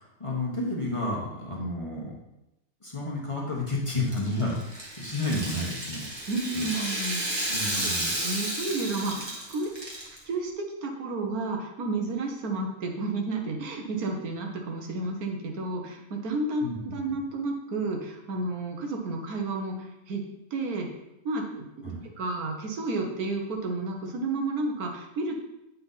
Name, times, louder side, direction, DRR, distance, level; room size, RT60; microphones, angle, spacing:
voice 1, 0.0-2.1 2.8-6.0 6.5-6.8 7.5-8.1 16.6-16.8 21.8-22.1, left 2 dB, 25° left, -4 dB, 1.2 m, -31 dB
Rattle (instrument), 3.9-10.2, right 1 dB, 20° right, 1.3 m, -32 dB
voice 2, 6.3-7.5 7.8-9.9 10.2-20.2 20.5-20.9 21.2-25.3, right 2 dB, 85° right, 2 dB, 1.5 m, -31 dB
8.0 x 4.2 x 4.0 m, 0.90 s
omnidirectional pair, 1.5 m